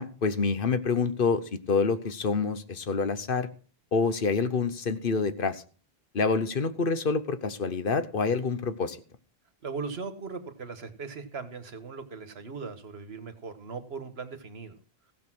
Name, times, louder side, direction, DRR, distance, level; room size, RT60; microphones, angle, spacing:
voice 1, 0.0-3.5 3.9-5.6 6.1-9.0, left 4 dB, 60° left, 12 dB, 1.1 m, -27 dB
voice 2, 9.6-14.8, right 4 dB, 85° right, 9 dB, 1.6 m, -39 dB
16.0 x 6.8 x 6.2 m, 0.40 s
omnidirectional pair, 1.0 m